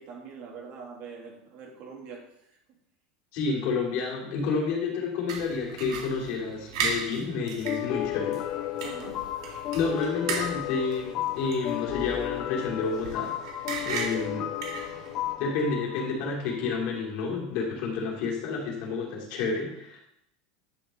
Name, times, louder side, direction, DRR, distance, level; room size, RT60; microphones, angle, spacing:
voice 1, 0.0-2.2 8.8-9.2, right 5 dB, 45° right, 0 dB, 2.5 m, -43 dB
voice 2, 3.3-8.4 9.7-13.3 13.8-14.5 15.4-20.0, left 4 dB, 50° left, -2 dB, 3.0 m, -30 dB
sound 1, 5.3-15.3, right 5 dB, 85° right, 1.9 m, -37 dB
sound 2, 7.6-16.9, left 14 dB, 35° left, 0.3 m, -34 dB
10.5 x 6.0 x 3.8 m, 0.77 s
supercardioid pair, 170°, 3 cm